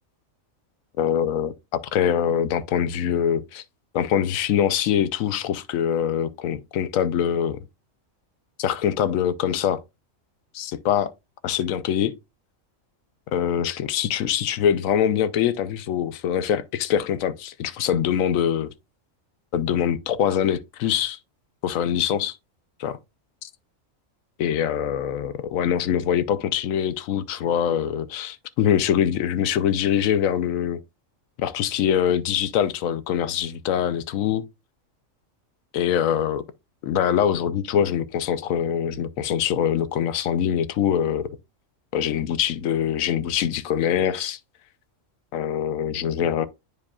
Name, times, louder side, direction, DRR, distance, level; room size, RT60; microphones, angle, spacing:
voice 1, 1.0-3.6 3.9-7.6 8.6-9.8 10.5-11.1 11.4-12.1 13.3-18.7 19.5-21.2 21.6-22.4 22.8-23.0 23.4-23.5 24.4-30.8 31.4-34.4 35.7-36.4 36.8-41.4 41.9-44.4 45.3-46.5, left 9 dB, 85° left, 1.0 m, -23 dB
9.4 x 4.9 x 2.3 m
omnidirectional pair, 1.4 m